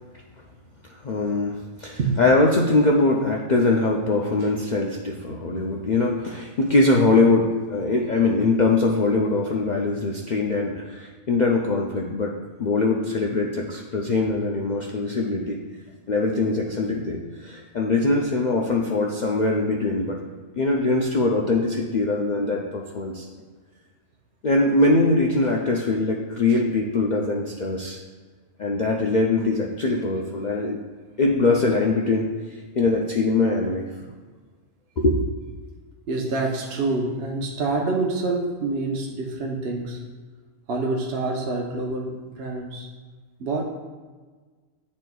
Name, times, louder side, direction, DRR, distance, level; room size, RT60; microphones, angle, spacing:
voice 1, 0.9-12.3 12.6-15.6 16.1-20.2 20.6-23.3 24.4-28.0 28.6-30.8 31.2-33.9 35.0-35.2, left 3 dB, 70° left, -1 dB, 0.4 m, -22 dB
voice 2, 36.1-40.0 40.7-42.9 43.4-43.6, right 3 dB, 55° right, -1 dB, 0.8 m, -27 dB
10.5 x 4.2 x 2.3 m, 1.4 s
omnidirectional pair, 1.5 m